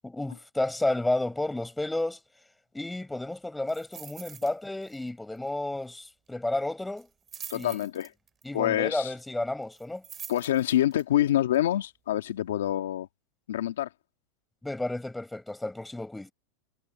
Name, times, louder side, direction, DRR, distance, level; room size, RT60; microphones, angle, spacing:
voice 1, 0.0-2.2 2.7-7.1 7.5-7.8 8.4-10.0 14.6-16.3, left 2 dB, 5° left, 7.6 m, -31 dB
sound 1, 3.7-4.5 4.8-5.1 5.4-5.5 7.0-8.4 9.7-11.0 11.5-11.6, right 8 dB, 25° right, 6.4 m, -44 dB
voice 2, 7.5-8.1 8.5-9.1 10.3-13.1 13.5-13.9, left 12 dB, 85° left, 2.1 m, -26 dB
supercardioid pair, 130°, 0 cm